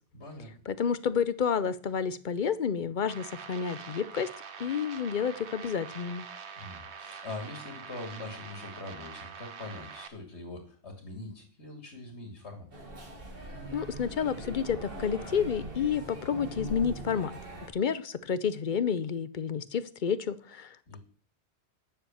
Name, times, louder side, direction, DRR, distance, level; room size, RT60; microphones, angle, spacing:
voice 1, 0.1-0.5 6.6-12.7 20.9-21.0, left 2 dB, 90° left, 3 dB, 2.7 m, -43 dB
voice 2, 0.7-4.3 4.6-6.3 13.7-17.4 17.7-21.0, left 7 dB, 50° left, 15 dB, 0.8 m, -30 dB
sound 1, 3.1-10.1, right 6 dB, 85° right, 1.3 m, -45 dB
sound 2, 12.7-17.7, right 1 dB, 55° right, 2.3 m, -41 dB
10.0 x 6.9 x 7.2 m, 0.43 s
omnidirectional pair, 1.1 m